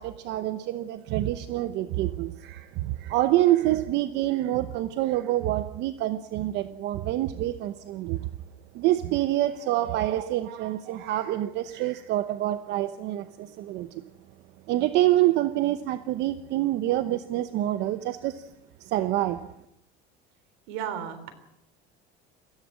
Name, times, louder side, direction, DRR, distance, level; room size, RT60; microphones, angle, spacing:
voice 1, 0.0-8.3 8.7-13.9 14.7-18.4 18.9-19.5, right 14 dB, 60° right, 1.0 m, -26 dB
voice 2, 20.7-21.3, right 9 dB, 75° right, 3.8 m, -33 dB
24.0 x 16.5 x 7.6 m
cardioid pair, 140°, 20 cm